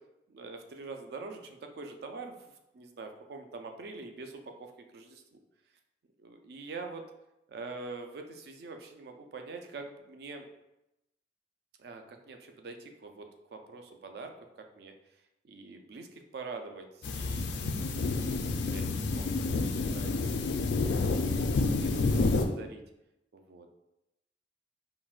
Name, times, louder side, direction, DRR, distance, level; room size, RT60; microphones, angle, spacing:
voice 1, 0.3-5.4 6.2-7.0 7.5-10.5 11.8-14.3 14.8-14.9 15.4-20.2 20.6-22.8 23.3-23.7, right 3 dB, 60° right, 5 dB, 0.3 m, -45 dB
sound 1, 17.0-22.5, left 3 dB, 70° left, 0.3 m, -29 dB
3.8 x 2.1 x 2.4 m, 0.91 s
head